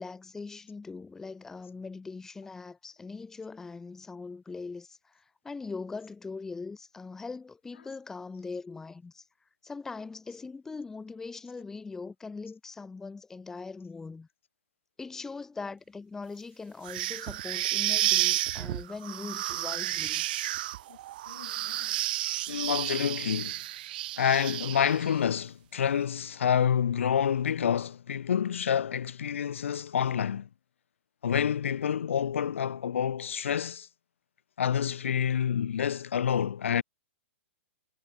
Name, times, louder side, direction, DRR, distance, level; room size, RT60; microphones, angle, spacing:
voice 1, 0.0-9.2 9.6-14.3 15.0-20.3, left 4 dB, 5° left, 1.4 m, -41 dB
sound 1, 16.8-25.1, right 15 dB, 45° right, 0.7 m, -31 dB
voice 2, 21.3-22.0 22.5-23.6 24.2-30.5 31.2-33.9 34.6-36.8, left 8 dB, 85° left, 3.3 m, -28 dB
hypercardioid pair, 165°, 7 cm